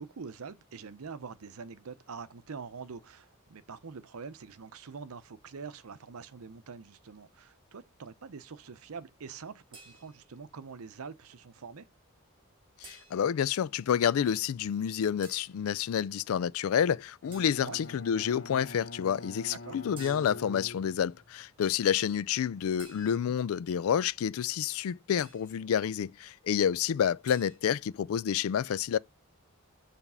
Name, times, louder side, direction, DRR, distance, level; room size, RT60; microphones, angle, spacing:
voice 1, 0.0-11.9 17.6-17.8 19.4-19.8 23.1-23.4, right 5 dB, 85° right, 0.6 m, -45 dB
sound 1, 9.7-10.4 12.8-13.5 15.2-15.6 17.3-17.9 20.0-20.6 22.8-23.5 25.2-25.7 27.3-27.6, right 3 dB, 20° right, 1.8 m, -53 dB
voice 2, 12.8-29.0, left 8 dB, 75° left, 0.3 m, -29 dB
Bowed string instrument, 17.2-21.4, left 2 dB, 50° left, 0.9 m, -45 dB
7.1 x 3.4 x 5.5 m
head